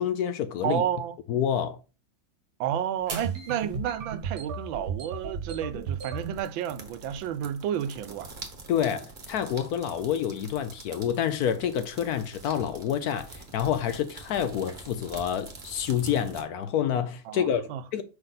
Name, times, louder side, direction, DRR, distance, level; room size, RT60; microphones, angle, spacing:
voice 1, 0.0-0.8 1.3-1.8 8.7-18.0, left 9 dB, 70° left, 0.9 m, -28 dB
voice 2, 0.6-1.2 2.6-8.3 17.3-17.8, right 10 dB, 85° right, 1.4 m, -31 dB
sound 1, 3.0-16.4, right 3 dB, 30° right, 1.1 m, -46 dB
sound 2, 3.1-6.4 6.9-7.4 7.6-7.9 8.2-8.5 9.1-9.4, right 6 dB, 55° right, 1.3 m, -35 dB
5.9 x 5.3 x 4.0 m
omnidirectional pair, 2.1 m